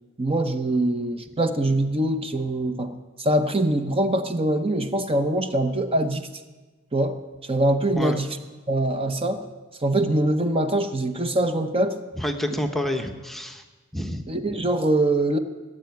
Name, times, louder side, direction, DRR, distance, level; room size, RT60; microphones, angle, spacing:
voice 1, 0.2-2.9 3.2-6.3 6.9-8.4 8.7-9.4 9.8-12.0 14.3-15.4, right 1 dB, 25° right, 7 dB, 0.8 m, -23 dB
voice 2, 12.2-13.6 13.9-14.3, left 1 dB, ahead, 4 dB, 0.8 m, -28 dB
17.5 x 7.6 x 9.3 m, 1.3 s
head